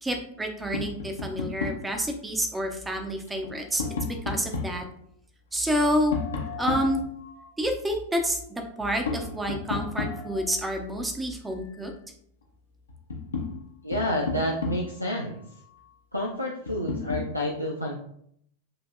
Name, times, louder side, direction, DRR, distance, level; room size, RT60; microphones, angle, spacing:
voice 1, 0.0-4.8 5.5-6.1 6.6-7.0 7.6-11.9, equal, 10° right, 4 dB, 0.8 m, -28 dB
Tap, 0.7-1.9 3.3-4.8 6.1-7.6 9.1-10.6 12.4-12.5 12.9-15.1 16.7-17.3, left 4 dB, 70° left, 0.8 m, -33 dB
voice 2, 13.8-15.4 16.1-17.9, equal, 90° right, 0 dB, 0.5 m, -29 dB
7.6 x 2.7 x 2.3 m, 0.69 s
figure-of-eight pair, 90°, 0 cm